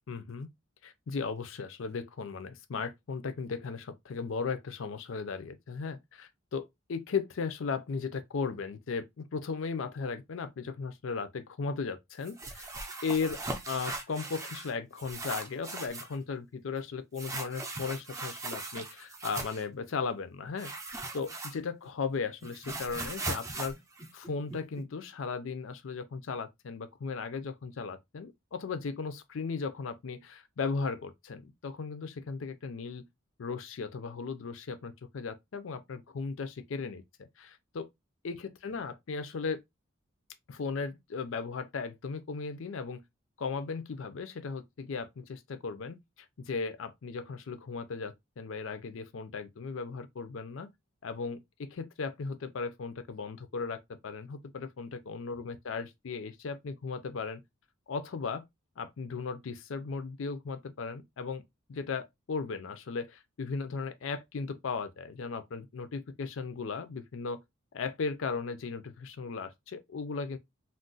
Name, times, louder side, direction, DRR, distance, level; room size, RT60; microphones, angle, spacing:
voice 1, 0.1-0.5 0.8-12.7 13.0-20.7 21.1-23.7 24.1-33.0 33.4-37.9 38.2-39.6 40.5-43.0 43.4-46.0 46.4-50.7 51.0-57.4 57.9-58.4 58.8-61.4 61.7-67.4 67.7-70.4, left 5 dB, 70° left, 0.5 m, -36 dB
sound 1, 12.2-14.7 15.0-16.2 17.2-19.7 20.6-21.9 22.2-24.8, right 2 dB, 15° right, 0.5 m, -39 dB
2.4 x 2.1 x 3.8 m
head